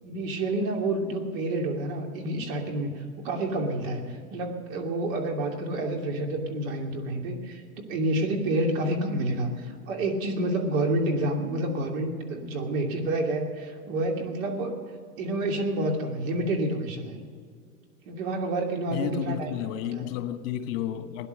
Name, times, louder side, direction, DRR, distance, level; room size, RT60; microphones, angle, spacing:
voice 1, 0.0-7.6 7.9-14.7 15.2-17.2 18.1-19.5 19.9-20.1, right 1 dB, 60° right, 2 dB, 2.8 m, -29 dB
voice 2, 18.9-21.3, left 10 dB, 60° left, 9 dB, 1.5 m, -31 dB
17.0 x 10.5 x 6.5 m, 2.1 s
hypercardioid pair, 125°, 44 cm